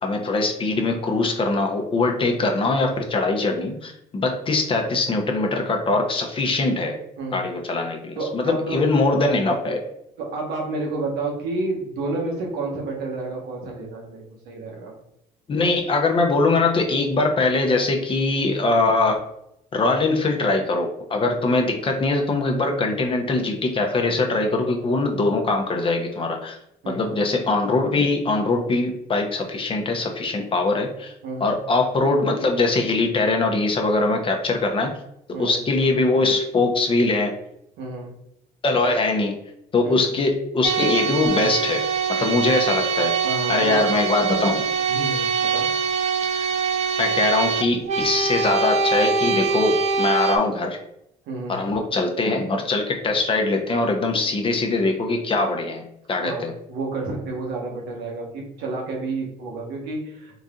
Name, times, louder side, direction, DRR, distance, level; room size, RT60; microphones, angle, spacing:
voice 1, 0.0-7.0 7.3-9.8 15.5-19.2 19.7-26.6 26.9-31.1 31.4-34.9 35.4-37.3 38.6-39.4 39.7-41.8 42.2-43.1 43.5-44.6 46.3-46.4 47.0-50.8 51.5-55.8 56.1-56.5, left 3 dB, 30° left, 3 dB, 0.7 m, -22 dB
voice 2, 8.2-8.8 10.2-14.9 26.8-27.1 31.2-31.5 35.3-35.6 37.8-38.1 39.8-40.1 43.2-43.9 44.9-45.7 51.3-51.6 56.2-60.4, right 2 dB, 85° right, -1 dB, 1.2 m, -30 dB
sound 1, 40.6-50.4, right 5 dB, 40° right, 0.5 m, -23 dB
3.9 x 2.7 x 3.6 m, 0.78 s
cardioid pair, 110°, 17 cm